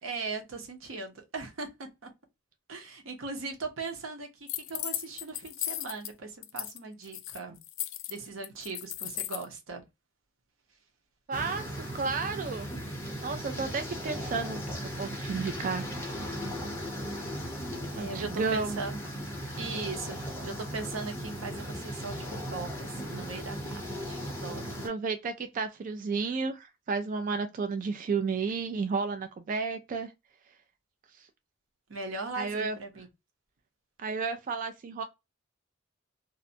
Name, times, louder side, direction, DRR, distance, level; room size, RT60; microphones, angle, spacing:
voice 1, 0.0-2.1 2.7-7.6 8.1-9.8 17.9-19.0 19.6-24.8 31.9-33.1, right 3 dB, 90° right, 0.8 m, -39 dB
sound 1, 4.5-6.1 6.4-6.8 7.0-9.5, left 13 dB, 70° left, 0.3 m, -36 dB
sound 2, 11.3-24.9, equal, 10° left, 0.7 m, -37 dB
voice 2, 11.3-11.6 11.9-12.7 13.2-14.6 15.0-15.8 17.9-18.8 24.8-30.1 31.2-31.3 32.4-32.8 34.0-35.0, right 4 dB, 40° right, 0.3 m, -32 dB
2.6 x 2.1 x 2.6 m
head